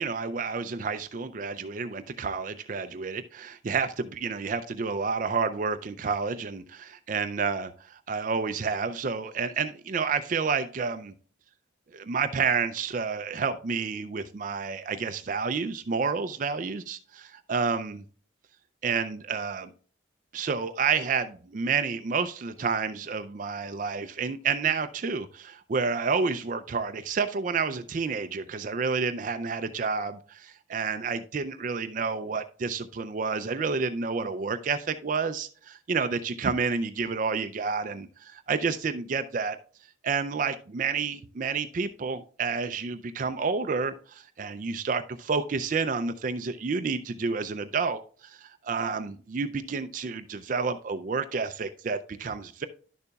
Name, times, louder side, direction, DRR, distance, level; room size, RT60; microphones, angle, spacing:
voice 1, 0.0-11.1 11.9-18.0 18.8-19.7 20.3-39.6 40.0-52.6, right 5 dB, 40° right, 0.4 m, -30 dB
11.0 x 6.7 x 2.3 m
head